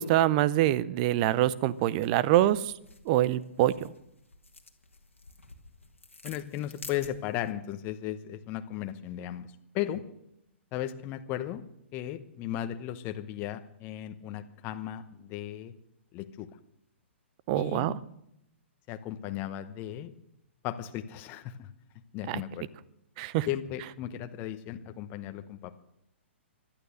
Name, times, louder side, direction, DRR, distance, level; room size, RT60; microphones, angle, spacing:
voice 1, 0.0-2.7 3.1-3.9 17.5-18.0 22.3-22.4 23.2-23.5, right 14 dB, 40° right, 19 dB, 0.7 m, -25 dB
sound 1, 1.4-7.5, left 3 dB, 90° left, 1.7 m, -51 dB
voice 2, 6.2-10.0 10.7-11.6 11.9-15.7 16.1-16.5 17.5-17.9 18.9-20.1 20.6-21.7 22.1-22.7 23.5-25.8, left 12 dB, 30° left, 9 dB, 0.9 m, -36 dB
16.0 x 12.0 x 6.5 m, 0.81 s
figure-of-eight pair, 115°, 7 cm